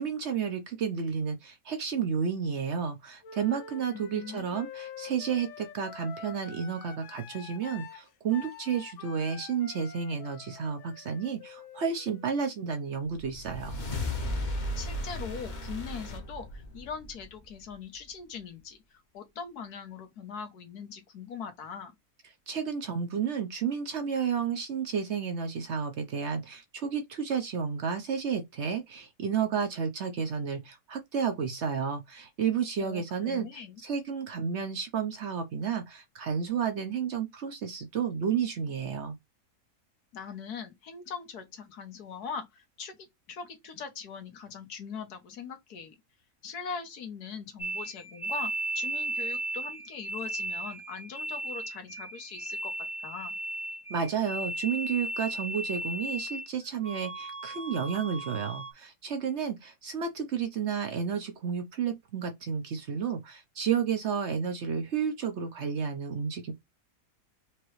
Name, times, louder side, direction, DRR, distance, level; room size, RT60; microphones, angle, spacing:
voice 1, 0.0-13.8 22.5-39.2 53.9-66.5, right 7 dB, 55° right, 0.9 m, -31 dB
Wind instrument woodwind instrument, 3.2-13.0, left 6 dB, 60° left, 0.9 m, -47 dB
voice 2, 4.1-4.6 14.7-21.9 32.8-33.8 40.1-45.9 46.4-52.7 53.0-53.3, left 6 dB, 80° left, 1.6 m, -41 dB
sound 1, 13.2-17.7, left 1 dB, 35° left, 0.9 m, -35 dB
sound 2, 47.6-56.5 56.8-58.7, right 1 dB, 10° left, 0.3 m, -36 dB
4.5 x 2.9 x 3.1 m
omnidirectional pair, 1.6 m